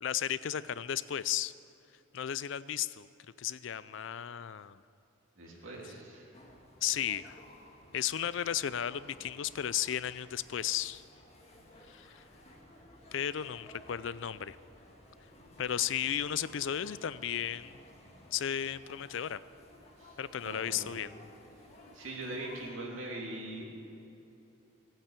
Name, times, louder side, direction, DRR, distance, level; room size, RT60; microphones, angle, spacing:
voice 1, 0.0-1.5 2.1-3.1 3.4-4.8 6.8-7.4 7.9-11.0 11.9-12.2 13.1-14.6 15.6-17.8 18.3-19.4 20.2-21.1, left 10 dB, 65° left, 16 dB, 0.4 m, -34 dB
voice 2, 5.4-6.3 20.0-20.2 20.4-21.0 21.9-23.7, right 1 dB, 75° right, -3 dB, 3.2 m, -42 dB
sound 1, 6.3-22.7, left 1 dB, 30° left, 1.9 m, -56 dB
16.0 x 9.0 x 8.3 m, 2.8 s
head